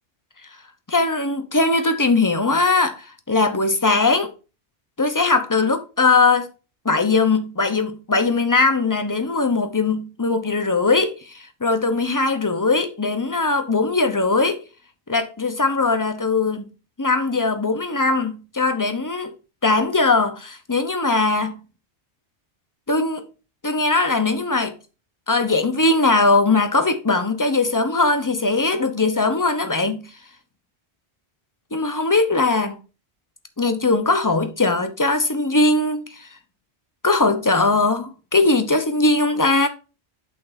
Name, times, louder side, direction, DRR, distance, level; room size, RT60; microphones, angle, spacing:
voice 1, 0.9-4.3 5.0-6.5 6.8-14.6 15.1-16.6 17.0-19.3 19.6-21.6 22.9-23.3 23.6-24.7 25.3-30.1 31.7-32.8 33.6-36.3 37.0-39.7, left 3 dB, 20° left, 0.9 m, -20 dB
8.3 x 6.1 x 2.7 m
omnidirectional pair, 1.1 m